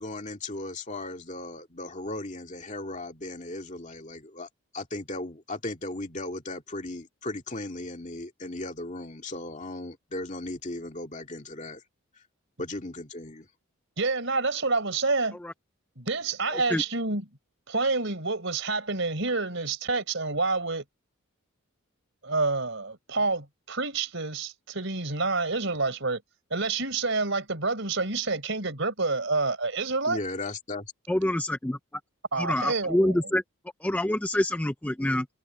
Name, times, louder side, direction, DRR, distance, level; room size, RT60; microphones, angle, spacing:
voice 1, 0.0-4.5 4.7-11.8 12.6-13.5 30.1-30.9, left 2 dB, 35° left, 2.3 m, -36 dB
voice 2, 14.0-15.4 16.0-17.3 17.7-20.8 22.2-26.2 26.5-30.2 32.3-33.3, right 3 dB, 60° right, 4.5 m, -28 dB
voice 3, 16.5-16.8 31.1-31.8 32.4-33.4 33.8-35.3, left 1 dB, 5° left, 0.4 m, -26 dB
head